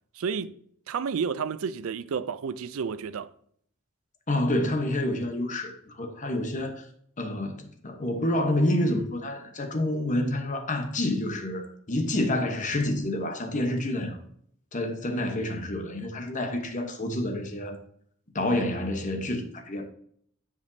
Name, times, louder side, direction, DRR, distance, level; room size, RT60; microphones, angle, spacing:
voice 1, 0.1-0.5 0.9-3.3, right 6 dB, 70° right, 0.4 m, -31 dB
voice 2, 4.3-6.8 7.2-14.2 14.7-17.8 18.3-19.9, left 1 dB, 35° left, 1.0 m, -28 dB
9.8 x 5.1 x 2.7 m
head